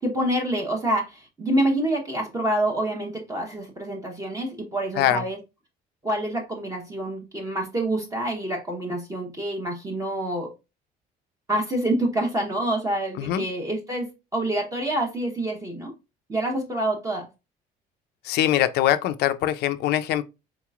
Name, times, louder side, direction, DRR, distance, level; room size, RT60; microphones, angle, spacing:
voice 1, 0.0-5.4 6.0-10.5 11.5-15.9 16.3-17.3, right 1 dB, 20° right, 0.8 m, -27 dB
voice 2, 18.2-20.2, left 12 dB, 75° left, 0.4 m, -22 dB
4.0 x 2.9 x 2.3 m
cardioid pair, 110°, 17 cm